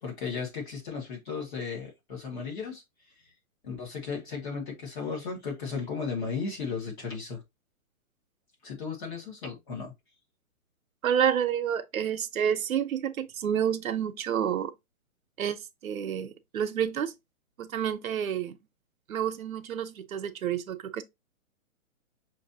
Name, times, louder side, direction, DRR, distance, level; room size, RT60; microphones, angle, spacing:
voice 1, 0.0-2.8 3.6-7.4 8.6-9.9, left 5 dB, 35° left, 1.9 m, -35 dB
voice 2, 11.0-14.7 15.4-17.1 17.6-18.6 19.1-21.0, right 9 dB, 80° right, 0.8 m, -29 dB
5.8 x 2.8 x 2.7 m
hypercardioid pair, 170°, 41 cm